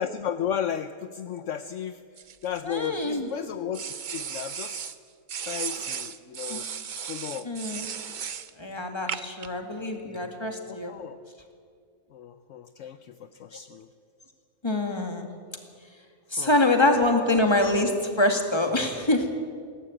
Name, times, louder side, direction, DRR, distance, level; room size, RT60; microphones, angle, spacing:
voice 1, 0.0-2.0 2.4-4.9 5.4-6.7 7.1-7.5 10.7-11.2 12.1-13.9 16.4-16.5 16.8-17.2, left 8 dB, 65° left, 11 dB, 1.0 m, -34 dB
sound 1, 2.2-3.2 3.7-5.0 5.3-8.5 9.1-9.5, right 7 dB, 45° right, 0.7 m, -35 dB
voice 2, 2.6-3.3 6.5-6.6 7.4-7.9 8.6-10.9 14.6-15.3 16.3-19.3, left 2 dB, 20° left, 4 dB, 2.2 m, -25 dB
21.0 x 17.0 x 8.8 m, 2.2 s
omnidirectional pair, 1.4 m